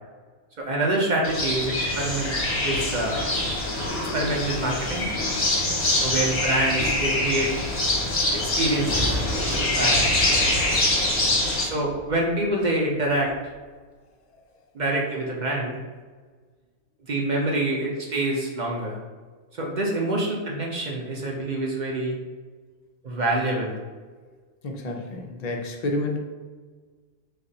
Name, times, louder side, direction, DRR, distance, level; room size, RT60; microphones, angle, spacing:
voice 1, 0.6-2.3 2.6-3.2 4.1-5.1 6.0-7.5 8.3-10.1 11.6-13.3 14.7-15.8 17.1-19.0 19.5-22.2 23.0-23.8, right 1 dB, 50° right, -1 dB, 0.5 m, -26 dB
sound 1, 1.2-11.6, left 1 dB, 35° left, 0.9 m, -24 dB
Explosion, 8.9-12.8 13.3-13.4, right 1 dB, ahead, 0.4 m, -33 dB
voice 2, 24.6-26.2, left 2 dB, 60° left, 2 dB, 0.4 m, -29 dB
6.4 x 2.4 x 2.7 m, 1.4 s
omnidirectional pair, 1.4 m